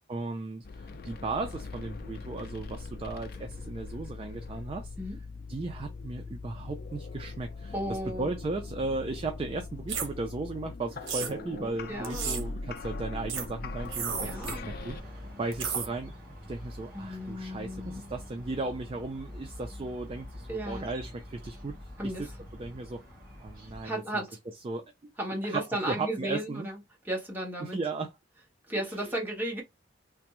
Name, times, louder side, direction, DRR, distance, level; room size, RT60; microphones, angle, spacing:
voice 1, 0.1-4.9 5.5-16.1 16.5-21.7 22.0-22.3 22.6-23.0 23.4-24.2 24.6-24.8 25.4-26.7 27.6-28.1 28.8-29.1, right 3 dB, 30° right, 0.3 m, -36 dB
sound 1, 0.6-15.0, left 3 dB, 50° left, 0.4 m, -41 dB
voice 2, 7.7-8.3 11.2-12.4 14.2-14.6 16.9-18.0 20.5-20.9 22.0-22.3 23.8-24.4 25.2-26.8 27.0-27.8 28.7-29.6, right 1 dB, 10° right, 1.0 m, -35 dB
sound 2, 9.9-10.1 11.1-11.3 12.0-12.4 13.3-13.5 13.9-14.6 15.5-15.9, right 6 dB, 85° right, 0.8 m, -33 dB
sound 3, 13.8-23.9, left 1 dB, 50° right, 1.8 m, -45 dB
3.4 x 2.0 x 2.9 m
head